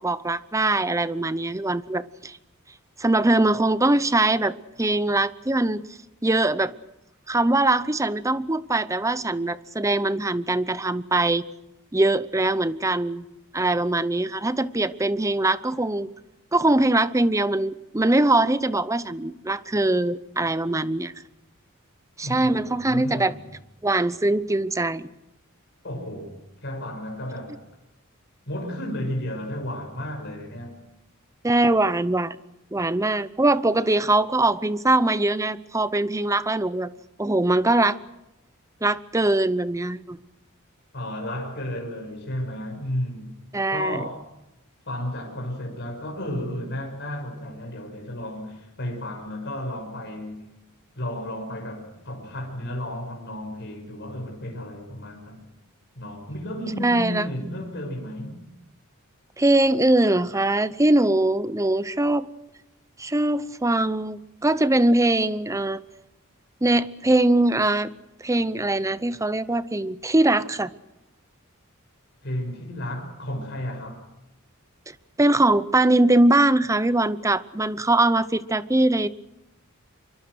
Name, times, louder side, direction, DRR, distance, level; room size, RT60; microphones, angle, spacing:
voice 1, 0.0-2.4 3.0-5.9 6.2-6.7 7.3-11.4 11.9-13.2 13.5-16.1 16.5-21.1 22.2-23.3 23.8-25.1 31.4-32.4 32.7-36.9 37.2-38.0 38.8-40.2 43.5-44.0 56.8-57.3 59.4-62.3 63.0-65.8 66.6-67.9 68.2-70.7 74.9-79.1, right 2 dB, 15° right, 0.8 m, -22 dB
voice 2, 22.2-23.3 25.8-27.6 28.5-30.7 40.9-43.4 43.7-44.2 44.9-50.5 51.0-55.4 56.0-58.5 72.2-74.0, left 1 dB, 55° left, 6.2 m, -33 dB
25.5 x 24.0 x 6.3 m
head